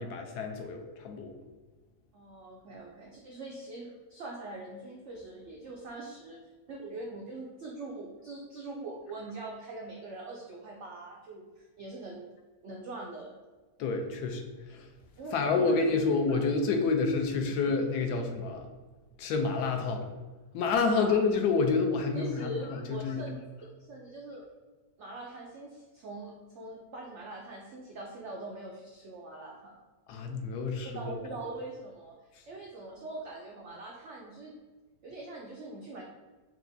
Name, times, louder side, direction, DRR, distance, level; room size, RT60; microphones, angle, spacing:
voice 1, 0.0-1.3 13.8-14.9 15.3-18.7 19.2-20.1 20.5-23.3 30.1-31.2, left 4 dB, 75° left, 4 dB, 1.1 m, -29 dB
voice 2, 2.1-6.4 6.7-12.3 12.6-13.3 15.2-15.9 16.3-16.5 20.9-21.1 22.1-23.4 23.8-24.4 25.0-29.7 30.6-32.1 32.5-34.5 35.0-36.0, right 2 dB, 85° right, -1 dB, 0.6 m, -42 dB
5.8 x 2.3 x 2.6 m, 1.3 s
omnidirectional pair, 1.9 m